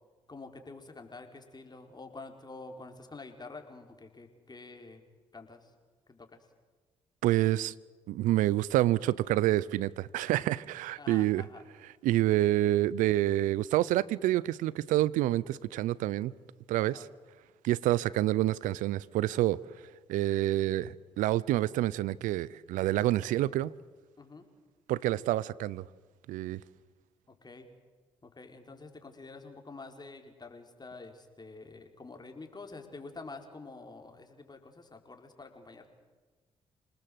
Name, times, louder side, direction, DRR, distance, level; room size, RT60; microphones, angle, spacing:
voice 1, 0.3-5.0 5.3-5.7 6.1-6.5 11.0-11.6 16.8-17.1 24.2-24.5 27.4-27.7 28.2-35.9, left 3 dB, 30° left, 4.6 m, -48 dB
voice 2, 7.2-7.7 8.1-11.4 12.0-16.3 16.7-17.1 17.6-19.6 20.1-23.7 24.9-25.8 26.3-26.6, right 15 dB, 80° right, 0.7 m, -27 dB
28.0 x 19.5 x 7.9 m
hypercardioid pair, 50°, 13 cm